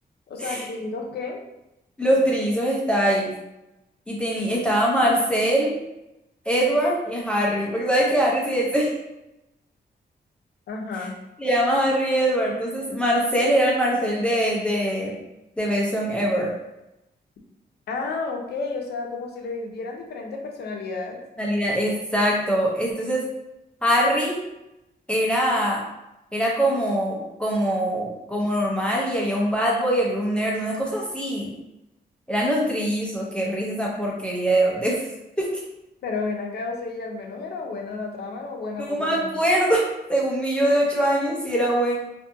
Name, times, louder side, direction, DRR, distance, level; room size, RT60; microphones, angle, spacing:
voice 1, 0.3-1.4 10.7-11.2 17.9-21.2 36.0-39.3, left 3 dB, 75° left, 1 dB, 0.5 m, -31 dB
voice 2, 2.0-3.3 4.1-5.7 6.5-8.9 11.4-15.1 15.6-16.5 21.4-23.2 23.8-24.5 25.1-25.8 26.3-31.5 32.3-35.0 35.4-35.5 38.9-41.9, right 1 dB, 5° left, -4 dB, 0.5 m, -23 dB
2.5 x 2.5 x 2.5 m, 0.90 s
wide cardioid pair, 130°, 17 cm